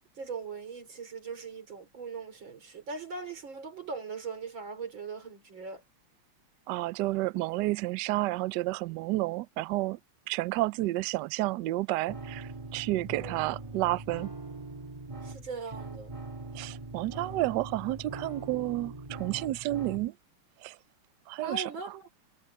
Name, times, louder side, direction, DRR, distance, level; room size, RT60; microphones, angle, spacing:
voice 1, 0.2-5.8 13.2-13.3 15.2-16.1 21.4-22.0, right 5 dB, 60° right, 4.6 m, -40 dB
voice 2, 6.7-10.0 10.3-14.3 16.5-20.1 20.6-20.8 21.3-21.7, right 18 dB, 85° right, 0.9 m, -31 dB
sound 1, 12.1-20.1, right 2 dB, 15° right, 1.6 m, -42 dB
omnidirectional pair, 2.4 m